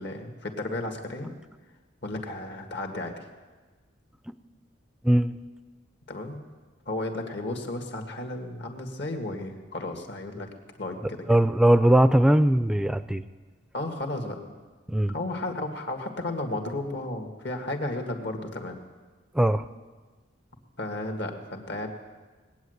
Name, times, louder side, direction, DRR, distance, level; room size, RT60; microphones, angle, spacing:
voice 1, 0.0-1.3 2.0-3.3 6.1-6.4 6.9-10.5 10.8-11.3 13.7-14.4 15.1-18.8 20.8-21.9, left 2 dB, 60° left, 3 dB, 1.9 m, -33 dB
voice 2, 11.3-13.2 14.9-15.1 19.3-19.6, right 1 dB, 5° right, 13 dB, 0.4 m, -20 dB
20.5 x 8.9 x 8.0 m, 1.4 s
head